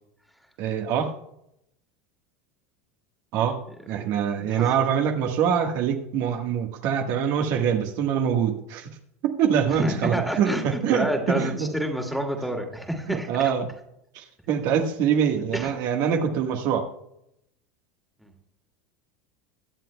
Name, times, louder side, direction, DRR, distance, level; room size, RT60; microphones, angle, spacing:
voice 1, 0.6-1.1 3.3-3.6 3.9-8.9 9.2-11.7 13.1-13.7 14.1-16.8, right 8 dB, 60° right, 3 dB, 1.4 m, -24 dB
voice 2, 4.4-4.7 9.7-13.5 15.5-15.8 18.2-18.3, right 1 dB, ahead, 3 dB, 2.1 m, -29 dB
21.5 x 7.6 x 2.2 m, 0.77 s
supercardioid pair, 105°, 7 cm